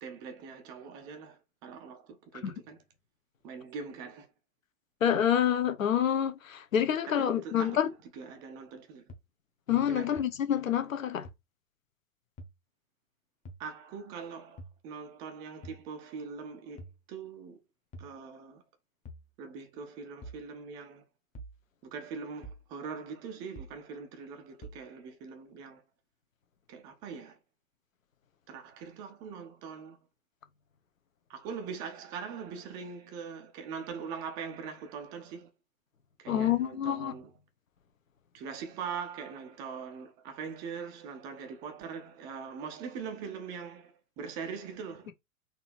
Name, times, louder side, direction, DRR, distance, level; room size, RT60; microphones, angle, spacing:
voice 1, 0.0-2.8 3.4-4.3 7.1-7.9 8.1-9.0 9.9-10.2 13.6-17.6 18.0-18.6 19.4-21.0 21.9-25.8 26.7-27.4 28.5-30.0 31.3-35.5 36.2-37.3 38.3-45.1, right 6 dB, 10° right, 0.4 m, -42 dB
voice 2, 5.0-7.9 9.7-11.3 36.3-37.1, left 9 dB, 65° left, 1.1 m, -27 dB
sound 1, 9.1-9.2 10.2-10.3 11.2-11.3 12.4-12.5 13.4-13.6 14.6-14.8 15.6-15.8 16.8-17.0 17.9-18.1 19.0-19.3 20.2-20.4 21.3-21.6 22.4-22.7 23.6-23.8 24.6-24.8, right 1 dB, 15° left, 1.0 m, -45 dB
4.1 x 2.8 x 4.3 m
figure-of-eight pair, 100°, 43 cm